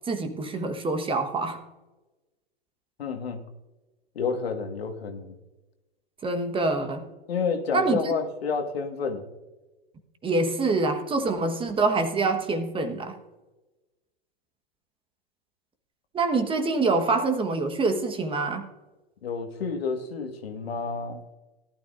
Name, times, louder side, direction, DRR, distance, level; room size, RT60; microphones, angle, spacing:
voice 1, 0.1-1.6 6.2-7.1 7.7-8.1 10.2-13.2 16.1-18.7, right 3 dB, 15° right, 7 dB, 1.2 m, -25 dB
voice 2, 3.0-3.4 4.1-5.3 7.3-9.2 19.2-21.2, left 5 dB, 75° left, 5 dB, 1.7 m, -30 dB
17.5 x 12.0 x 2.5 m, 1.1 s
hypercardioid pair, 110°, 31 cm